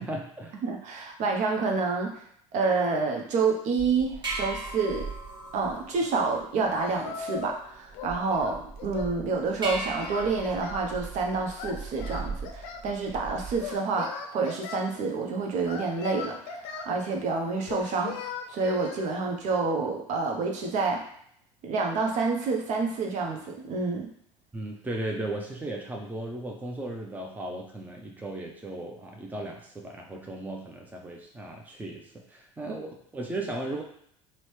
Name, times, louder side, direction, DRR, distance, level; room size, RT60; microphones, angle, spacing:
voice 1, 0.0-0.6 24.5-33.8, right 1 dB, 10° right, 0 dB, 0.6 m, -36 dB
voice 2, 0.6-2.2 2.5-5.1 5.5-18.2 18.5-21.0 21.6-24.1 32.7-32.8, right 4 dB, 50° right, 1 dB, 0.8 m, -28 dB
sound 1, 3.8-13.7, right 3 dB, 30° right, 1.1 m, -39 dB
Singing, 6.7-7.6 7.9-9.2 9.6-10.9 11.6-12.9 13.6-14.8 15.6-16.9 17.7-19.0, left 6 dB, 65° left, 0.6 m, -38 dB
4.0 x 2.1 x 3.1 m, 0.66 s
hypercardioid pair, 70°, 16 cm